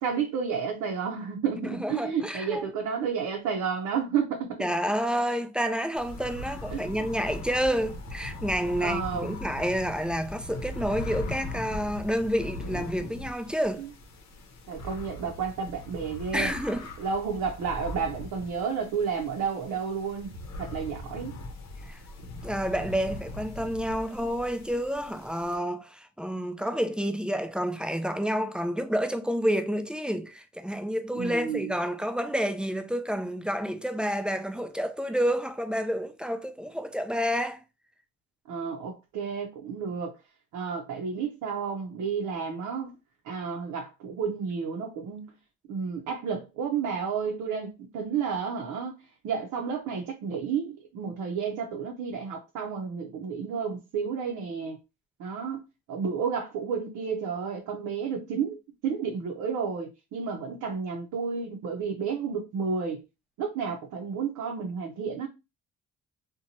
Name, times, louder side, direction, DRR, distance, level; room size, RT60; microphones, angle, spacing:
voice 1, 0.0-4.7 6.7-7.3 8.8-9.4 13.8-13.9 14.7-16.5 17.0-20.3 20.6-21.3 31.2-31.7 38.5-40.2 40.5-42.9 43.2-45.3 45.7-49.0 49.2-54.8 55.2-55.6 55.9-58.6 58.8-63.0 63.4-65.3, right 6 dB, 80° right, 0.6 m, -31 dB
voice 2, 1.6-2.7 4.6-13.8 16.3-16.9 21.9-22.0 22.4-37.6, equal, 5° right, 0.3 m, -29 dB
sound 1, 5.9-25.6, left 2 dB, 65° left, 0.8 m, -40 dB
2.9 x 2.2 x 2.6 m
cardioid pair, 90°, 30 cm